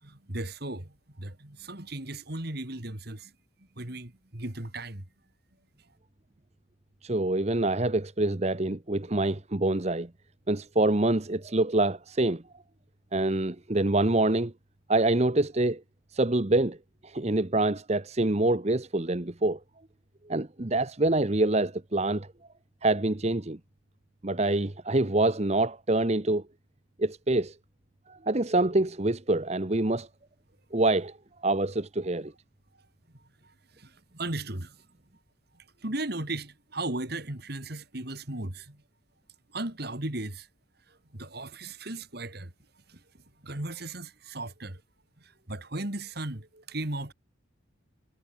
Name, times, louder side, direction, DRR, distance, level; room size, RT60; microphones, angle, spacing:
voice 1, 0.0-3.3 3.8-5.1 33.4-34.8 35.6-38.8 39.5-40.5 40.9-42.5 42.9-43.0 43.4-44.8 45.2-47.1, right 2 dB, 55° right, 3.0 m, -36 dB
voice 2, 7.0-10.1 10.5-12.4 13.1-14.5 14.9-15.8 16.1-16.8 17.0-19.6 20.3-22.3 22.8-23.6 24.2-26.4 27.0-27.6 28.1-30.1 30.7-31.2 31.4-32.3, right 2 dB, 35° right, 1.0 m, -26 dB
head